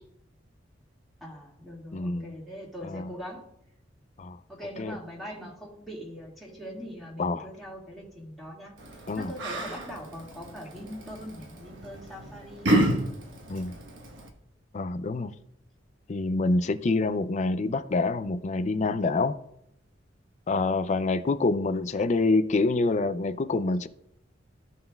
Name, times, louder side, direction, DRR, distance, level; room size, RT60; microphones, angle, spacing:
voice 1, 1.2-3.4 4.5-12.8 21.7-22.1, equal, ahead, 2.0 m, -42 dB
voice 2, 1.9-2.3 2.8-3.1 4.2-4.4 4.8-5.0 7.2-7.5 9.1-9.3 13.5-13.7 14.7-15.3 16.1-19.4 20.5-23.9, left 3 dB, 40° left, 0.4 m, -26 dB
Yell, 8.8-14.3, right 1 dB, 75° right, 1.2 m, -31 dB
15.5 x 5.5 x 2.3 m
head